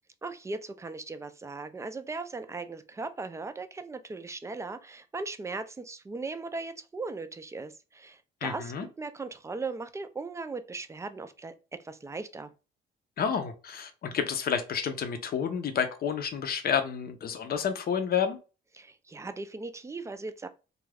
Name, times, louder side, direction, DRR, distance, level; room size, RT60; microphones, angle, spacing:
voice 1, 0.2-11.5 11.8-12.5 18.7-20.5, right 3 dB, 15° right, 0.3 m, -38 dB
voice 2, 8.4-8.9 13.2-18.4, left 7 dB, 50° left, 0.6 m, -30 dB
2.4 x 2.2 x 3.2 m
cardioid pair, 90°, 20 cm